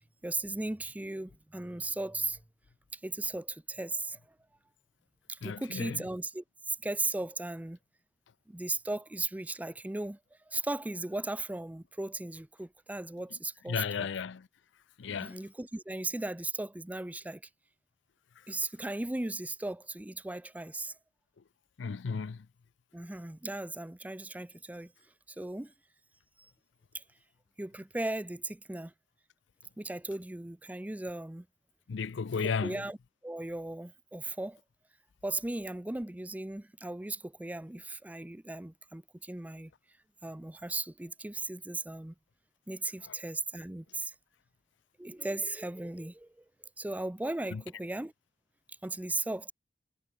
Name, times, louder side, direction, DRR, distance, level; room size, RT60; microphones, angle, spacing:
voice 1, 0.2-2.4 2.9-4.2 5.3-7.8 8.5-10.2 10.5-14.1 15.1-17.4 18.5-20.9 22.9-24.9 25.3-25.7 26.9-27.0 27.6-28.9 29.8-31.5 32.4-33.0 33.2-34.6 35.2-39.7 40.2-42.1 42.7-44.1 45.0-46.4 46.8-48.1 48.8-49.5, right 2 dB, 10° right, 0.5 m, -37 dB
voice 2, 5.4-6.0 13.7-14.5 15.0-15.4 21.8-22.4 31.9-32.8 43.1-43.2 47.5-47.6, left 5 dB, 75° left, 0.5 m, -34 dB
head